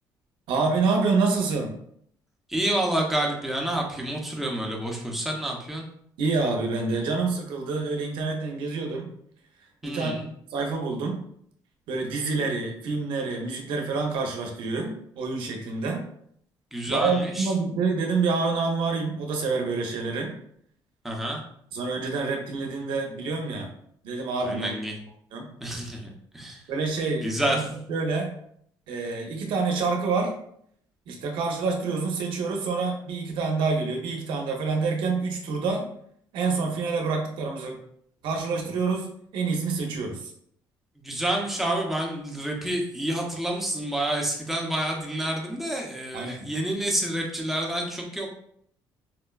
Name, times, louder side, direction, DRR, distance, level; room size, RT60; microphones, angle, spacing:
voice 1, 0.5-1.7 6.2-9.1 9.8-10.2 10.5-11.2 11.9-16.0 16.9-20.3 21.7-23.7 24.0-24.7 25.3-25.5 26.7-27.6 27.9-28.3 28.9-30.3 31.1-35.9 36.3-37.8 38.2-39.1 39.3-40.3 46.1-46.3, right 4 dB, 80° right, 2 dB, 0.7 m, -27 dB
voice 2, 2.5-5.8 9.8-10.3 16.7-17.5 21.0-21.4 24.4-25.0 25.6-26.6 27.2-27.7 41.0-48.3, right 1 dB, 5° right, -1 dB, 0.6 m, -28 dB
4.2 x 2.1 x 2.3 m, 0.68 s
cardioid pair, 125°, 8 cm